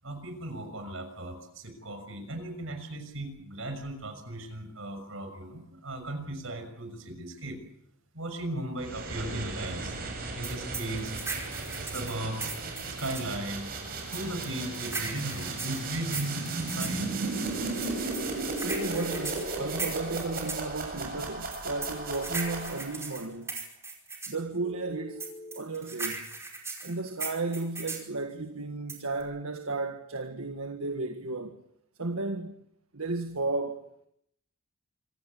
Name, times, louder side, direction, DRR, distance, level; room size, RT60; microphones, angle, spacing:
voice 1, 0.0-7.6 8.1-10.0 10.3-11.1 11.8-12.5 12.9-13.7 14.1-17.1, right 1 dB, 70° right, 6.3 m, -37 dB
sound 1, 8.8-23.1, right 3 dB, 45° right, 7.7 m, -35 dB
sound 2, 10.4-13.3 14.1-17.0 17.8-20.7 21.5-24.4 25.2-28.1 28.9-29.2, right 4 dB, 15° right, 5.1 m, -37 dB
voice 2, 18.6-23.6 24.3-25.3 25.6-26.3 26.8-31.6 32.0-32.6 32.9-34.1, right 3 dB, 85° right, 1.8 m, -34 dB
Telephone, 18.7-19.7 21.6-22.7 24.6-25.6, left 1 dB, 25° left, 6.6 m, -45 dB
26.5 x 16.5 x 8.5 m
head